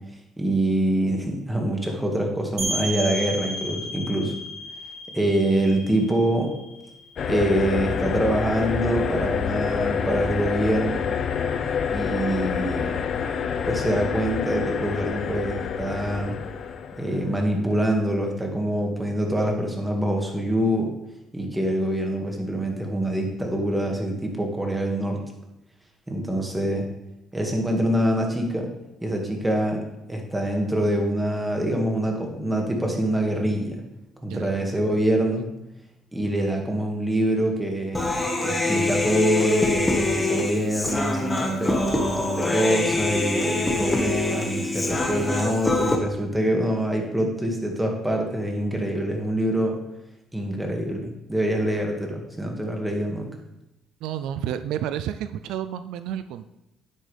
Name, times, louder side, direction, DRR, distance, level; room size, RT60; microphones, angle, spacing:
voice 1, 0.4-4.4 5.1-6.5 7.3-11.0 11.9-13.0 13.7-16.4 17.0-20.9 21.3-25.2 26.1-26.9 27.3-28.7 29.0-33.8 34.2-35.4 36.1-49.8 50.3-53.3, right 1 dB, 10° right, 1 dB, 2.0 m, -25 dB
sound 1, 2.6-8.1, right 1 dB, 60° right, 3.8 m, -34 dB
sound 2, 7.2-17.5, left 6 dB, 55° left, 0.7 m, -27 dB
Human voice, 37.9-46.0, left 2 dB, 15° left, 1.6 m, -25 dB
voice 2, 54.0-56.5, right 10 dB, 85° right, 11 dB, 0.4 m, -30 dB
9.8 x 8.4 x 3.4 m, 0.89 s
cardioid pair, 95°, 0 cm